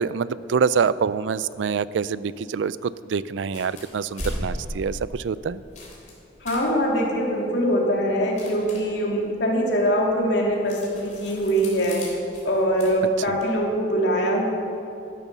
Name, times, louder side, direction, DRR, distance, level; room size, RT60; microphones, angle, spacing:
voice 1, 0.0-5.6 13.3-13.4, right 6 dB, 85° right, 17 dB, 0.4 m, -25 dB
sound 1, 3.4-13.5, left 1 dB, 40° left, 3.3 m, -39 dB
voice 2, 6.4-12.1 12.4-14.4, equal, 70° left, -2 dB, 2.6 m, -23 dB
12.5 x 11.0 x 6.1 m, 2.6 s
head